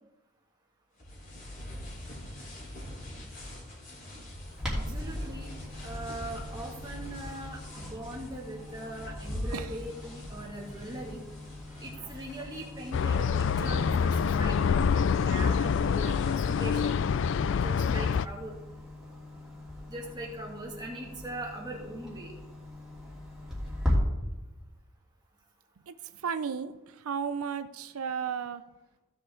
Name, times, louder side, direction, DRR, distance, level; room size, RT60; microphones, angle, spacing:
sound 1, 1.0-17.0, left 1 dB, 40° left, 4.1 m, -44 dB
Clock, 4.6-23.9, left 1 dB, ahead, 3.1 m, -40 dB
voice 1, 4.7-5.5 5.8-11.2 11.8-17.0 17.6-18.6 19.9-22.3, right 1 dB, 20° right, -2 dB, 2.3 m, -41 dB
sound 2, 12.9-18.3, left 6 dB, 55° left, 0.3 m, -26 dB
voice 2, 26.2-28.6, right 6 dB, 85° right, 11 dB, 0.5 m, -34 dB
16.0 x 7.2 x 3.8 m, 1.0 s
head